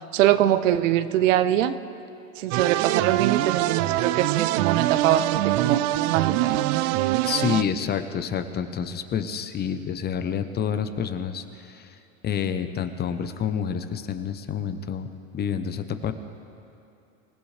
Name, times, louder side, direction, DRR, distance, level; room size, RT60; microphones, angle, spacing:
voice 1, 0.1-1.8 2.4-6.6, right 12 dB, 65° right, 13 dB, 0.8 m, -23 dB
sound 1, 2.5-7.6, right 16 dB, 40° right, 0.4 m, -24 dB
voice 2, 7.2-12.0 12.2-15.1 15.3-16.1, left 7 dB, 25° left, 10 dB, 0.8 m, -28 dB
26.0 x 15.5 x 3.3 m, 2.7 s
hypercardioid pair, 105°, 41 cm